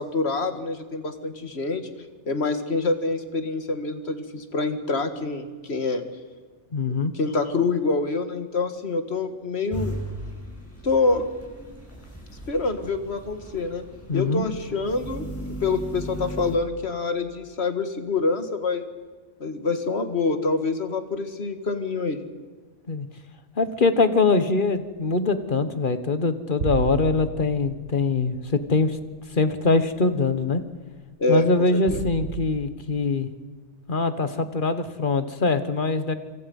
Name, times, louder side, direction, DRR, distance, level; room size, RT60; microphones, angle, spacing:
voice 1, 0.0-1.9 2.3-6.0 7.1-10.0 10.8-11.3 12.5-13.8 14.1-15.3 15.6-18.8 19.4-22.2 31.2-31.4 31.7-32.0, left 3 dB, 60° left, 8 dB, 2.1 m, -26 dB
voice 2, 6.7-7.1 14.1-14.4 22.9-23.1 23.6-29.0 29.3-30.6 31.3-33.3 33.9-36.1, left 3 dB, 45° left, 11 dB, 1.6 m, -23 dB
sound 1, 9.7-16.6, right 1 dB, 10° left, 6.8 m, -37 dB
sound 2, 26.6-29.4 29.8-29.9 31.9-32.5, right 6 dB, 65° right, 1.6 m, -33 dB
26.5 x 26.0 x 5.5 m, 1.4 s
omnidirectional pair, 1.2 m